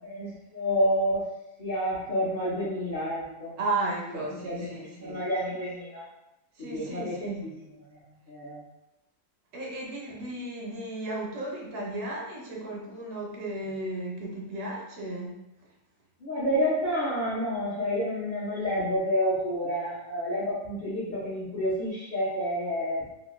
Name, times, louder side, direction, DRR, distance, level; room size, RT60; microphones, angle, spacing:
voice 1, 0.0-1.3 1.6-3.6 4.1-6.1 6.6-8.0 8.3-8.6 16.2-23.0, equal, 45° left, -8 dB, 0.6 m, -29 dB
voice 2, 3.6-5.2 6.6-7.5 9.5-15.4, right 2 dB, 70° right, -2 dB, 1.2 m, -34 dB
3.2 x 2.5 x 3.0 m, 0.93 s
omnidirectional pair, 1.8 m